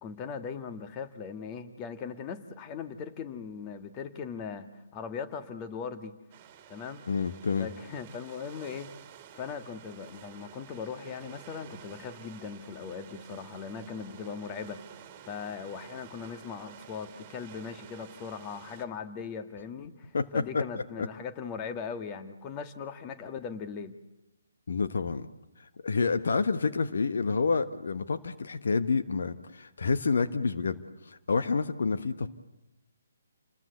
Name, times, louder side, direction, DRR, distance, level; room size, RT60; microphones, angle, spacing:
voice 1, 0.0-6.1 6.7-7.0 7.6-8.9 9.3-14.8 15.2-24.0, left 6 dB, 25° left, 8 dB, 1.8 m, -39 dB
sound 1, 6.3-18.9, right 9 dB, 25° right, 2.8 m, -51 dB
voice 2, 7.1-7.7 20.1-21.1 24.7-25.3 25.8-32.3, left 4 dB, 65° left, 10 dB, 1.3 m, -28 dB
29.5 x 21.0 x 8.2 m, 0.93 s
figure-of-eight pair, 140°, 0 cm